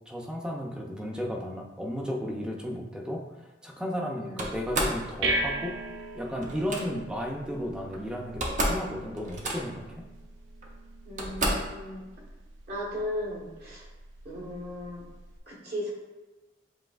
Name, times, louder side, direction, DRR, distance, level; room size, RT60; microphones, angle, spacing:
voice 1, 0.1-3.2 3.6-5.7 6.1-10.1, equal, 5° right, 0 dB, 0.5 m, -34 dB
Slam, 4.4-5.0 6.4-6.8 7.9-8.0 8.3-8.9 9.1-9.9 10.6-10.7 11.2-11.8, right 1 dB, 40° right, 0.7 m, -30 dB
sound 1, 4.4-15.4, right 1 dB, 85° right, 0.5 m, -39 dB
voice 2, 11.0-12.0 12.7-13.8 14.2-15.0 15.5-15.9, left 1 dB, 60° right, -4 dB, 1.4 m, -36 dB
7.5 x 2.7 x 2.4 m, 1.1 s
head